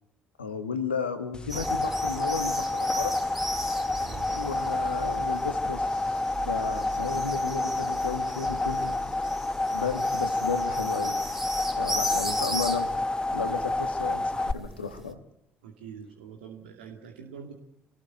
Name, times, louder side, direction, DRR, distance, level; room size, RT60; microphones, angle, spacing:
voice 1, 0.4-3.1 4.3-9.0 9.7-11.3 11.8-15.2, left 5 dB, 80° left, 7 dB, 1.8 m, -34 dB
sound 1, 1.3-14.5, left 2 dB, 15° left, 1.1 m, -29 dB
sound 2, 1.5-15.1, right 1 dB, 5° right, 3.0 m, -38 dB
voice 2, 15.6-17.5, right 7 dB, 75° right, 3 dB, 2.5 m, -44 dB
26.0 x 19.5 x 8.8 m, 0.78 s
figure-of-eight pair, 50°, 6 cm